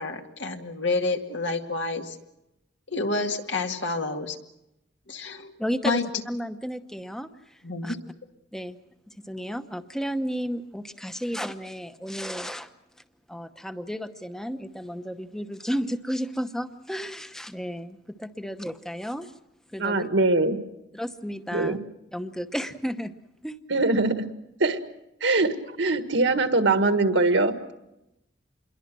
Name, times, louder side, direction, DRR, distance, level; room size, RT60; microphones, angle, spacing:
voice 1, 0.0-2.2 2.9-4.4 5.1-5.5 5.8-6.0 7.6-8.0, left 2 dB, 70° left, 4 dB, 2.1 m, -28 dB
voice 2, 5.6-6.0 6.3-7.9 8.5-8.8 9.1-12.7 13.3-19.3 19.7-20.1 20.9-21.8 22.1-23.1 23.4-23.6, equal, 5° left, 9 dB, 0.9 m, -33 dB
voice 3, 19.8-20.6 21.5-21.8 23.7-24.3 24.6-24.8 25.2-27.7, right 2 dB, 75° right, 8 dB, 1.8 m, -22 dB
27.5 x 22.5 x 6.2 m, 0.88 s
head